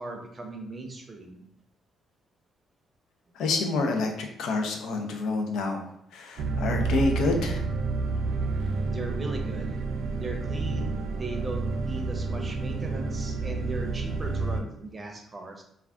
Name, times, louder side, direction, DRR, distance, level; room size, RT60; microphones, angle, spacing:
voice 1, 0.0-1.4 8.9-9.8 10.2-15.6, right 2 dB, 30° right, 3 dB, 0.6 m, -38 dB
voice 2, 3.4-7.6, left 3 dB, 80° left, 4 dB, 0.5 m, -28 dB
sound 1, 6.4-14.6, right 3 dB, 75° right, 0.4 m, -29 dB
2.4 x 2.2 x 3.4 m, 0.76 s
cardioid pair, 90°, 0 cm